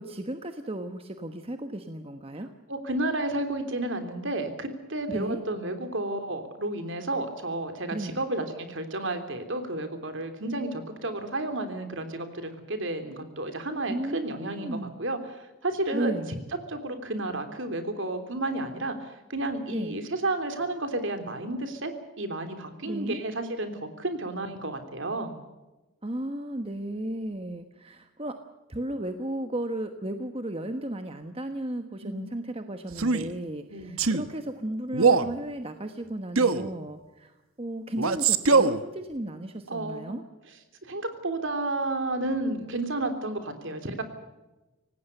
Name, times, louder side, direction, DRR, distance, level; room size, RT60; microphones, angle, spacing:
voice 1, 0.0-2.5 5.1-5.4 7.9-8.2 13.9-15.0 15.9-16.4 19.7-20.0 22.8-23.2 26.0-28.4 28.7-40.2, right 1 dB, 25° right, 7 dB, 1.2 m, -34 dB
voice 2, 2.7-16.2 16.7-21.9 22.2-25.3 32.0-32.2 33.7-34.0 39.7-40.2 40.8-44.0, right 2 dB, 60° right, 8 dB, 3.3 m, -32 dB
Male speech man speaking, 32.9-33.3 34.0-34.3 34.9-35.3 36.4-36.7 38.0-38.8, right 4 dB, 80° right, 1.3 m, -22 dB
26.0 x 18.5 x 6.8 m, 1.1 s
head